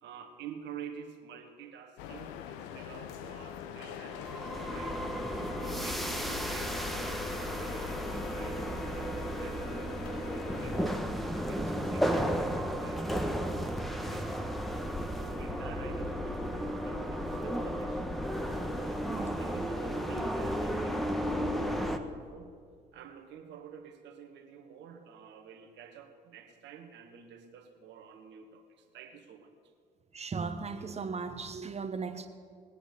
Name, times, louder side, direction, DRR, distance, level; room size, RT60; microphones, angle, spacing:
voice 1, 0.0-5.0 5.3-10.8 11.3-14.3 15.0-18.2 18.7-22.5 22.9-29.5, right 8 dB, 55° right, 6 dB, 1.8 m, -49 dB
sound 1, 2.0-11.0, left 8 dB, 65° left, 1.0 m, -43 dB
sound 2, 4.1-22.0, equal, ahead, 1.3 m, -33 dB
voice 2, 19.1-19.4 30.1-32.3, right 5 dB, 30° right, 8 dB, 1.5 m, -37 dB
19.5 x 9.9 x 6.9 m, 2.1 s
figure-of-eight pair, 50°, 21 cm